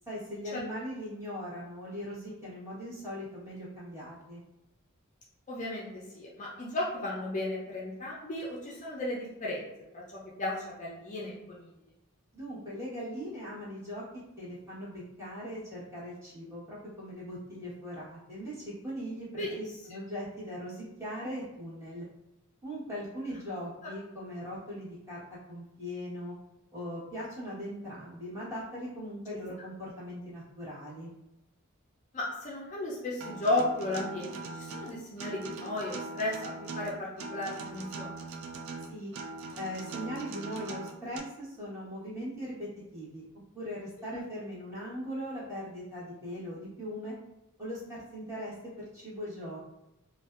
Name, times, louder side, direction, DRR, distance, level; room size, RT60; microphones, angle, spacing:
voice 1, 0.0-4.4 12.3-14.0 14.4-22.1 22.6-25.2 25.5-26.3 26.7-31.1 38.9-39.1 39.6-43.2 43.5-47.1 47.6-49.6, equal, 15° right, -10 dB, 1.1 m, -40 dB
voice 2, 5.5-9.7 9.9-11.6 19.4-19.5 32.1-38.1 44.0-44.1, left 2 dB, 35° left, -4 dB, 0.4 m, -34 dB
Acoustic guitar, 33.2-41.2, right 3 dB, 70° right, 0.3 m, -41 dB
2.5 x 2.2 x 2.3 m, 0.92 s
head